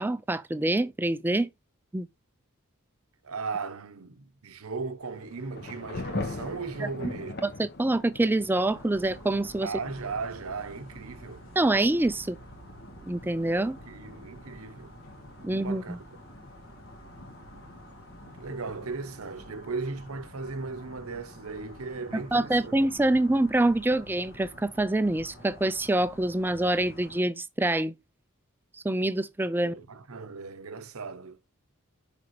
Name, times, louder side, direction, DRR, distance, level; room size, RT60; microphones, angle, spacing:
voice 1, 0.0-1.5 1.9-2.1 6.8-7.2 7.4-9.7 11.6-12.4 13.1-13.8 15.4-16.0 22.3-27.9 28.7-29.8, right 1 dB, 10° right, 0.4 m, -26 dB
voice 2, 3.2-7.4 9.6-11.5 13.7-15.0 15.4-16.1 18.2-22.8 29.6-31.4, right 4 dB, 80° right, 0.9 m, -37 dB
Thunder / Rain, 5.0-19.5, left 2 dB, 50° left, 1.0 m, -43 dB
sound 1, 8.7-27.2, equal, 65° left, 1.9 m, -49 dB
6.6 x 5.2 x 3.1 m
head